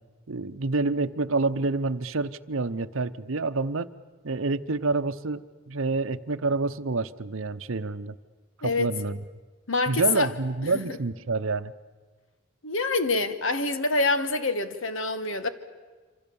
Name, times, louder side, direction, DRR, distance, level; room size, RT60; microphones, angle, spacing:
voice 1, 0.3-3.9 4.2-8.1 8.6-9.2 9.9-11.7, right 3 dB, 70° right, 0.8 m, -28 dB
voice 2, 9.7-10.3 10.7-11.0 12.6-15.5, left 3 dB, 70° left, 1.5 m, -26 dB
26.5 x 26.0 x 7.1 m
head